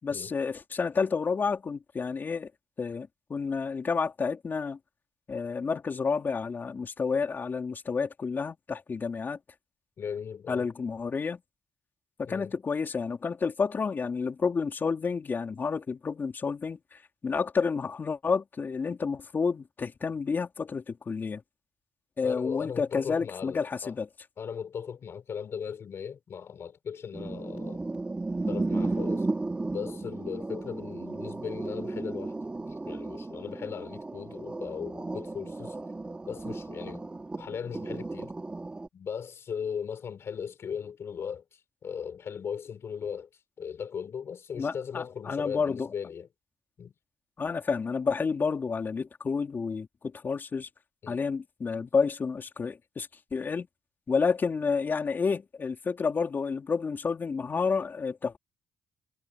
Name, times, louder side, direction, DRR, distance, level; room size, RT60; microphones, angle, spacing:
voice 1, 0.0-2.5 2.8-4.8 5.3-9.4 10.5-11.4 12.2-21.4 22.2-24.1 44.5-45.9 47.4-50.7 51.1-53.7 54.1-58.4, left 5 dB, 40° left, 4.5 m, -30 dB
voice 2, 10.0-10.7 12.2-12.5 22.2-24.0 24.4-27.8 28.5-29.3 29.7-32.4 32.9-35.8 36.3-37.1 37.4-38.3 38.9-41.4 41.8-43.3 43.6-46.3 46.8-46.9 51.0-51.2, left 7 dB, 55° left, 5.4 m, -38 dB
sound 1, 27.1-38.9, right 2 dB, 20° right, 5.6 m, -34 dB
cardioid pair, 95°, 5 cm